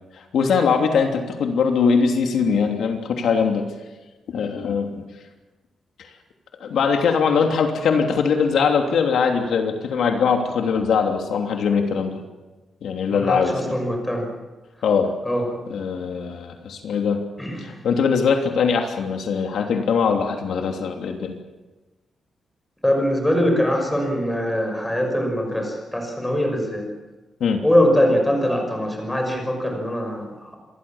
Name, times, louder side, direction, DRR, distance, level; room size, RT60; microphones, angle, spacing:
voice 1, 0.1-3.6 4.3-5.0 6.6-12.1 12.8-13.5 14.8-15.1 15.7-17.2 17.6-21.4 27.4-27.6, left 6 dB, 75° left, 3 dB, 3.0 m, -21 dB
voice 2, 13.1-14.3 15.2-15.5 17.4-17.6 22.8-26.9 27.6-30.6, equal, 5° left, 3 dB, 6.0 m, -22 dB
27.0 x 22.0 x 7.3 m, 1.1 s
wide cardioid pair, 160°, 0 cm